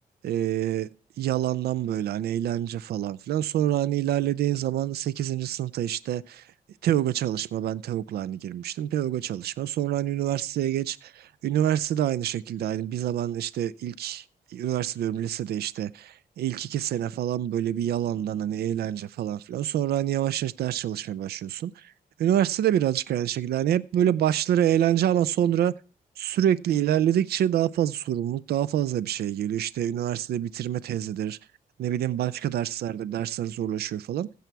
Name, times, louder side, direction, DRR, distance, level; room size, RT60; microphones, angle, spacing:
voice 1, 0.2-0.9 1.2-6.4 6.8-14.2 14.5-21.9 22.2-25.7 26.2-31.4 31.8-34.3, right 11 dB, 85° right, 0.4 m, -26 dB
15.0 x 7.0 x 4.6 m
cardioid pair, 130°, 16 cm